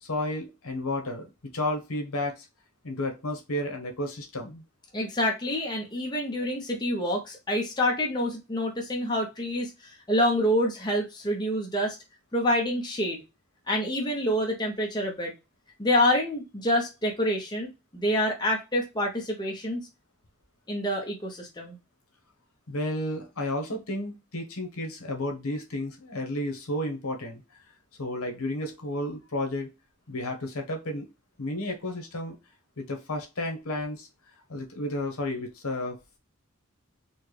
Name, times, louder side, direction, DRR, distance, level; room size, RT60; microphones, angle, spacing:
voice 1, 0.1-1.3 1.5-2.5 2.8-4.6 22.7-27.4 28.0-29.7 30.1-31.1 31.4-32.3 32.8-34.1 34.5-36.0, left 1 dB, 75° left, 3 dB, 1.0 m, -32 dB
voice 2, 4.9-12.0 12.3-13.2 13.7-15.3 15.8-19.9 20.7-21.8, left 1 dB, 20° left, -1 dB, 0.7 m, -27 dB
4.3 x 2.2 x 3.2 m, 0.25 s
head